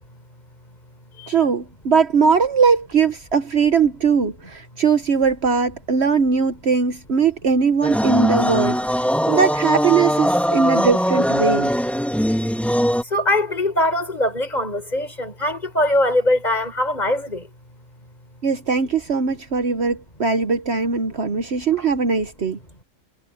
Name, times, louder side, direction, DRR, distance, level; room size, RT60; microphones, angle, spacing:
voice 1, 1.3-8.8 9.3-11.7 18.4-22.6, right 5 dB, 55° right, 1.3 m, -20 dB
sound 1, 7.8-13.0, equal, ahead, 1.6 m, -20 dB
voice 2, 13.0-17.5, left 1 dB, 30° left, 5.0 m, -22 dB
omnidirectional pair, 1.4 m